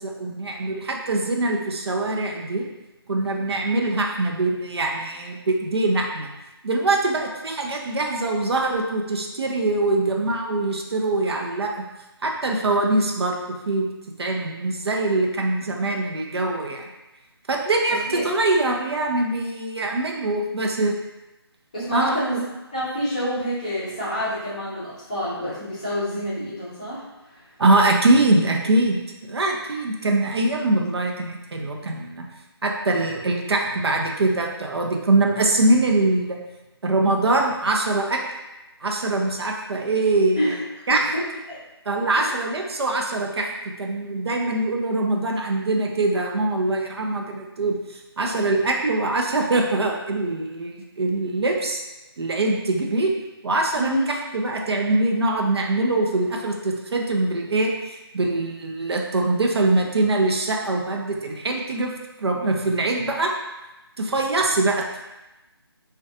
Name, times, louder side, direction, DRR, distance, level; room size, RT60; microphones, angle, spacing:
voice 1, 0.0-2.7 3.1-6.3 6.6-11.8 12.2-13.9 14.2-16.8 17.5-21.0 21.9-22.2 27.6-29.0 29.3-32.3 32.6-36.4 36.8-38.2 38.8-40.6 40.9-41.0 41.9-43.5 43.8-47.8 48.2-51.8 52.2-53.1 53.4-61.9 62.2-63.3 64.0-65.0, right 2 dB, 75° right, 1 dB, 0.5 m, -23 dB
voice 2, 21.7-22.4 22.7-27.0 27.3-27.4 40.3-40.6 41.1-41.6 42.2-42.3 53.7-54.1, equal, 15° left, -11 dB, 0.5 m, -27 dB
2.4 x 2.2 x 2.6 m, 1.0 s
figure-of-eight pair, 170°, 14 cm